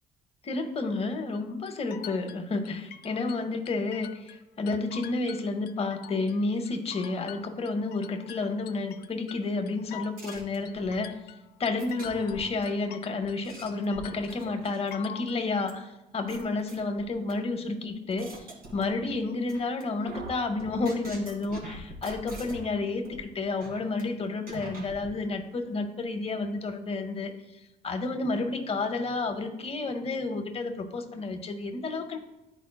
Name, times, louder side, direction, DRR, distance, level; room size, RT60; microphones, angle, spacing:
voice 1, 0.4-11.2 11.6-27.3 27.8-32.2, left 3 dB, 35° left, 6 dB, 0.8 m, -31 dB
sound 1, 1.3-4.4 4.7-6.4 6.6-13.4 13.7-15.4, left 10 dB, 70° left, 0.4 m, -46 dB
sound 2, 10.2-11.0 11.8-12.6 13.2-15.0 15.7-15.8 16.3-17.3 17.8-19.2 19.5-19.8 20.1-22.7 23.0-23.2 23.6-24.0 24.5-25.1, right 2 dB, 60° right, 2.0 m, -43 dB
11.0 x 4.6 x 2.2 m, 1.0 s
cardioid pair, 110°, 17 cm